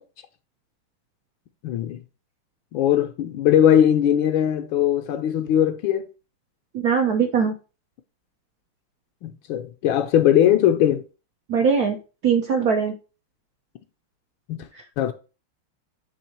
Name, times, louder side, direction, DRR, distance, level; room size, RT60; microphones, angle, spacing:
voice 1, 1.6-2.0 2.7-6.1 9.2-11.0 14.5-14.7 15.0-15.1, left 10 dB, 75° left, 1.3 m, -20 dB
voice 2, 6.7-7.5 11.5-12.0 12.2-12.9 14.7-14.8, right 6 dB, 70° right, 0.9 m, -21 dB
7.2 x 3.1 x 4.4 m
omnidirectional pair, 2.3 m